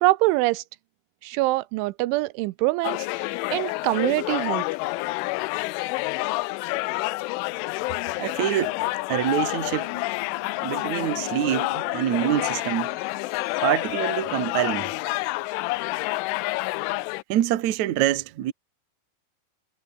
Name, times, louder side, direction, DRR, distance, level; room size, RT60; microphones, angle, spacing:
voice 1, 0.0-0.6 1.2-3.1 3.5-4.6, right 20 dB, 90° right, 3.1 m, -24 dB
sound 1, 2.8-17.2, left 23 dB, 90° left, 3.1 m, -28 dB
voice 2, 8.2-8.8 9.1-9.9 10.6-13.0 13.6-14.9 17.3-18.5, right 13 dB, 65° right, 1.8 m, -25 dB
sound 2, 9.9-15.4, left 10 dB, 65° left, 4.1 m, -42 dB
omnidirectional pair, 5.5 m